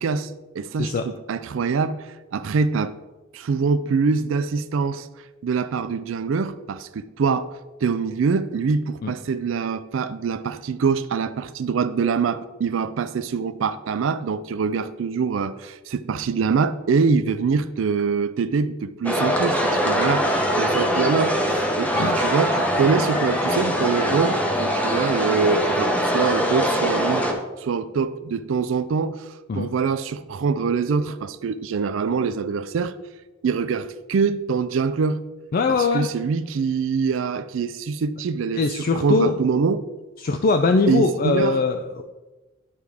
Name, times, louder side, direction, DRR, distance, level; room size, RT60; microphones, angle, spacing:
voice 1, 0.0-3.0 3.3-5.1 5.4-7.5 7.8-27.3 27.6-29.3 29.5-33.0 33.4-35.2 35.7-39.9 40.9-41.6, right 5 dB, 70° right, 0.4 m, -24 dB
sound 1, 19.0-27.3, equal, 5° left, 0.8 m, -22 dB
voice 2, 35.5-36.1 38.5-39.4 40.2-42.0, left 4 dB, 45° left, 0.4 m, -21 dB
11.5 x 4.8 x 3.5 m
head